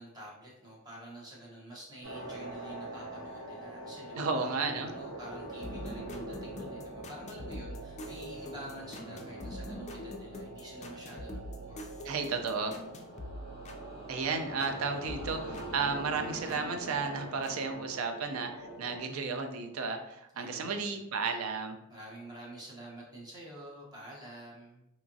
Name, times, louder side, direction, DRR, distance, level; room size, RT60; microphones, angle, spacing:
voice 1, 0.0-12.5 20.3-21.0 21.9-24.9, right 1 dB, 20° right, -4 dB, 0.7 m, -48 dB
sound 1, 2.0-19.0, right 1 dB, 55° right, 1.3 m, -44 dB
voice 2, 4.1-4.9 12.0-12.7 14.1-21.8, right 4 dB, 85° right, 6 dB, 0.4 m, -33 dB
sound 2, 5.6-14.8 15.1-16.7 17.4-17.5, left 1 dB, 35° left, 0.3 m, -45 dB
2.8 x 2.4 x 2.5 m, 0.85 s
head